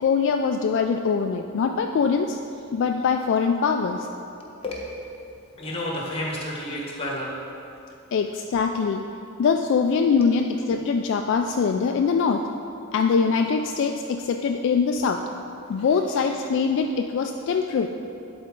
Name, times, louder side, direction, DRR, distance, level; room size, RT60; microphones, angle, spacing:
voice 1, 0.0-2.4 2.7-4.1 8.1-9.1 9.4-12.4 12.9-15.2 15.7-17.9, left 5 dB, 60° left, 4 dB, 0.3 m, -23 dB
voice 2, 5.6-7.4 10.2-10.3 15.8-16.1, left 1 dB, 30° left, -3 dB, 1.3 m, -31 dB
11.0 x 4.3 x 3.7 m, 2.7 s
head